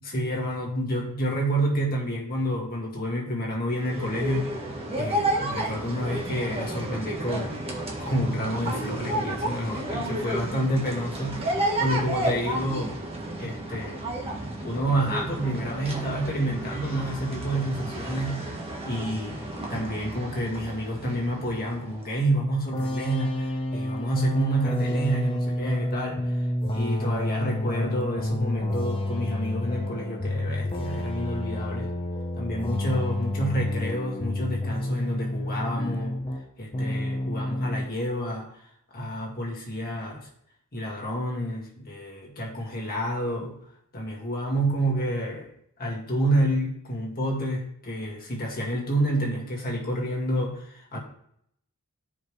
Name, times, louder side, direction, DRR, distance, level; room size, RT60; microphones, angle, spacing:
voice 1, 0.0-4.5 5.0-7.6 8.0-13.0 13.4-14.0 14.6-18.4 18.8-26.5 26.7-31.9 32.3-36.2 36.6-38.6 38.9-40.3 40.7-43.6 43.9-45.5 45.8-51.0, right 1 dB, 40° left, -2 dB, 2.1 m, -29 dB
sound 1, 3.7-22.2, right 1 dB, 25° right, 1.3 m, -32 dB
sound 2, 22.7-36.5 36.7-37.9, left 1 dB, 25° left, 0.8 m, -29 dB
12.0 x 5.1 x 3.2 m, 0.70 s
head